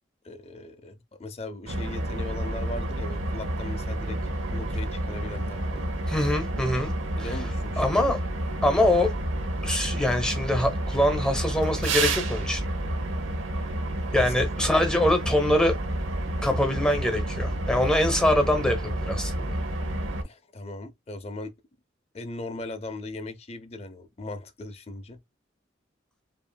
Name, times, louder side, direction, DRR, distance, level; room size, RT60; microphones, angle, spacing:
voice 1, 0.2-4.2 4.5-5.9 7.2-7.8 14.0-14.3 14.6-14.9 20.2-21.5 22.1-25.2, left 2 dB, 30° left, 0.5 m, -38 dB
sound 1, 1.7-20.2, right 1 dB, 85° right, 0.9 m, -30 dB
voice 2, 6.1-6.9 7.2-7.4 7.8-8.2 8.6-9.1 9.6-12.6 14.1-15.8 16.4-19.6, left 1 dB, 5° left, 0.8 m, -24 dB
5.3 x 2.6 x 2.2 m
head